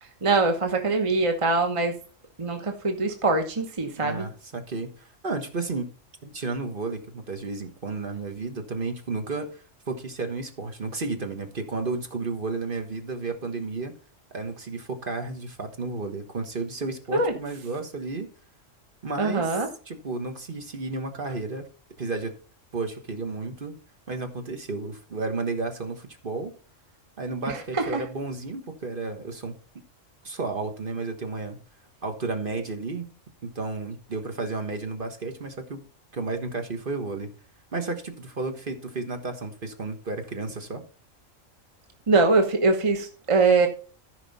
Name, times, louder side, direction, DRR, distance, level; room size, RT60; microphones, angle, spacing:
voice 1, 0.0-1.9 2.4-4.3 17.1-17.3 19.2-19.7 27.5-28.0 42.1-43.7, right 3 dB, 25° right, 4 dB, 1.1 m, -23 dB
voice 2, 4.0-5.9 6.2-13.9 14.3-18.3 19.0-19.5 19.9-21.7 22.0-22.3 22.7-23.7 24.1-26.5 27.2-29.6 30.2-31.6 32.0-33.1 33.4-35.8 36.1-37.3 37.7-40.8, right 3 dB, 45° right, 6 dB, 1.4 m, -32 dB
14.0 x 5.3 x 4.1 m, 0.38 s
omnidirectional pair, 1.3 m